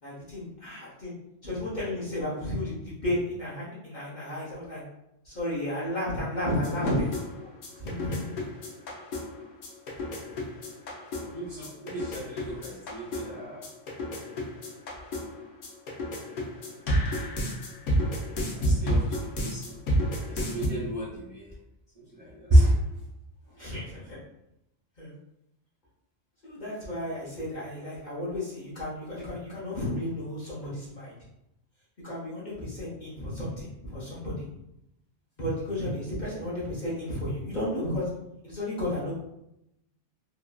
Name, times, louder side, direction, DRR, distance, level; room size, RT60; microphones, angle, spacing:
voice 1, 0.0-1.1 1.4-4.8 5.2-7.1 7.8-8.4 23.6-24.2 25.0-25.1 26.4-31.2 32.0-34.5 35.4-38.1 38.4-39.1, left 1 dB, 45° left, -8 dB, 0.8 m, -33 dB
sound 1, 6.6-20.7, equal, 85° left, 1.0 m, -31 dB
voice 2, 11.2-13.6 18.6-19.8 20.3-21.5 22.1-22.7, right 1 dB, 35° right, -8 dB, 0.8 m, -28 dB
2.9 x 2.4 x 2.2 m, 0.83 s
omnidirectional pair, 1.3 m